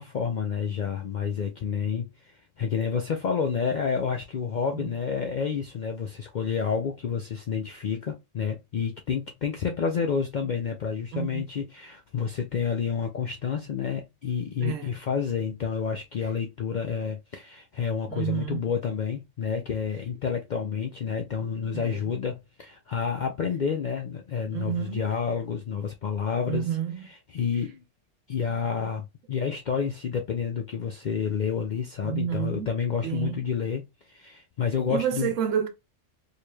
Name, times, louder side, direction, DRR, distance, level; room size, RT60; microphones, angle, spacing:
voice 1, 0.0-26.7 27.0-27.8 28.3-35.3, left 6 dB, 65° left, 0.4 m, -29 dB
voice 2, 11.1-11.4 14.6-15.0 18.1-18.6 21.7-22.0 24.5-25.1 26.5-27.1 29.4-29.5 32.0-32.7 33.0-33.5 34.9-35.7, right 9 dB, 85° right, 1.1 m, -30 dB
4.6 x 3.1 x 2.3 m
omnidirectional pair, 1.3 m